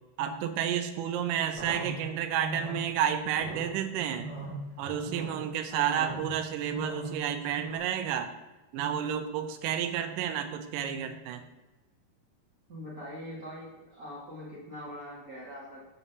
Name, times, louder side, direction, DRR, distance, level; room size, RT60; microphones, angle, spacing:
voice 1, 0.2-4.3 4.8-8.3 8.7-11.4, right 9 dB, 80° right, 8 dB, 2.2 m, -31 dB
sound 1, 1.5-7.8, right 1 dB, 15° left, 1.4 m, -41 dB
voice 2, 5.7-6.1 12.7-15.8, equal, 30° right, -7 dB, 2.2 m, -42 dB
7.2 x 4.0 x 6.7 m, 1.1 s
omnidirectional pair, 4.2 m